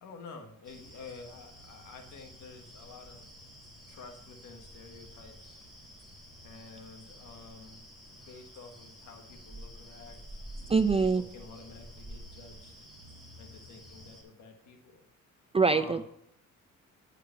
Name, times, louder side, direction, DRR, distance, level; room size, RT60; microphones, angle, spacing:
voice 1, 0.0-3.2 3.9-5.6 6.4-12.7 13.4-15.0 15.4-16.0, left 4 dB, 85° left, 5 dB, 1.5 m, -50 dB
sound 1, 0.6-14.2, right 1 dB, ahead, 3.4 m, -49 dB
voice 2, 10.7-11.2 15.5-16.0, right 4 dB, 20° right, 11 dB, 0.4 m, -24 dB
10.5 x 5.0 x 5.7 m, 0.74 s
cardioid pair, 90°, 30 cm